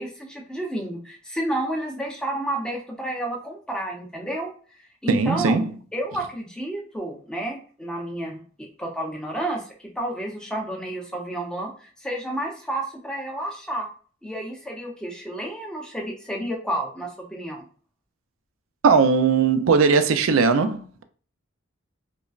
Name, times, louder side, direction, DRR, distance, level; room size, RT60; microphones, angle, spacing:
voice 1, 0.0-4.5 5.0-5.6 5.9-13.9 14.2-17.7, right 1 dB, 5° left, 0.7 m, -31 dB
voice 2, 5.1-5.6 18.8-21.0, right 5 dB, 80° right, 0.4 m, -19 dB
5.1 x 2.0 x 2.4 m
head